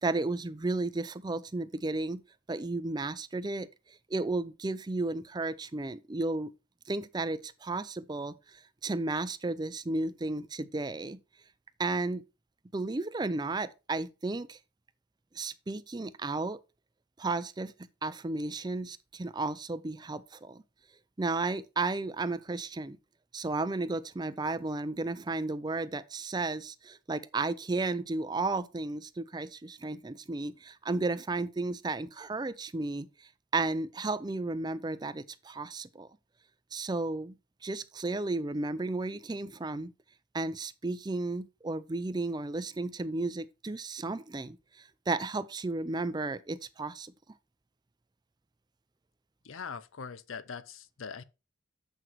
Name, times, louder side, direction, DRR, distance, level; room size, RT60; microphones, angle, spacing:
voice 1, 0.0-2.2 2.5-6.5 6.9-11.2 11.8-12.2 12.7-14.6 15.3-16.6 17.2-17.7 18.0-20.6 21.2-23.0 23.3-36.1 36.7-37.3 37.6-39.9 40.3-47.1, right 3 dB, 20° right, 0.5 m, -33 dB
voice 2, 49.4-51.2, left 6 dB, 85° left, 0.6 m, -42 dB
7.9 x 5.9 x 4.6 m
head